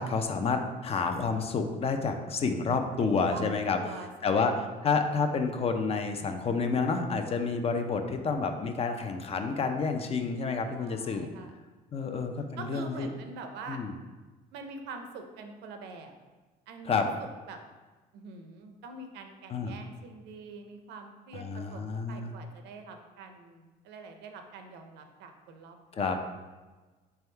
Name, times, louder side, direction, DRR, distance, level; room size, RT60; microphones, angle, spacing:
voice 1, 0.0-3.8 4.2-4.5 4.8-11.3 11.9-13.1 13.7-13.9 16.9-17.1 19.5-19.7 21.3-22.3 25.9-26.2, left 4 dB, 35° left, 6 dB, 0.5 m, -29 dB
voice 2, 3.0-5.0 10.8-11.5 12.0-12.3 12.6-13.8 14.5-16.1 16.7-17.1 17.5-17.6 18.1-26.2, right 4 dB, 85° right, 5 dB, 0.6 m, -45 dB
3.5 x 3.4 x 4.4 m, 1.3 s
cardioid pair, 110°, 17 cm